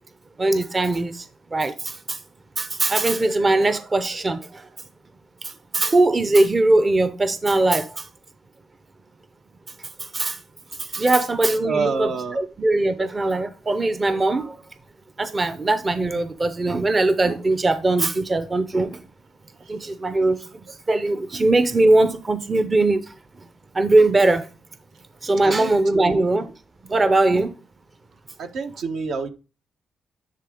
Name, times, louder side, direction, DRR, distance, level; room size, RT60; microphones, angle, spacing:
voice 1, 0.4-2.2 2.6-4.7 5.4-8.1 10.0-10.4 10.8-14.6 15.2-19.0 19.7-20.5 20.9-23.1 23.7-24.5 25.2-26.5 26.9-27.6, right 2 dB, 25° right, 0.6 m, -21 dB
voice 2, 11.6-12.4 25.4-26.3 28.4-29.3, right 4 dB, 70° right, 1.1 m, -28 dB
10.0 x 3.8 x 3.6 m
cardioid pair, 110°, 0 cm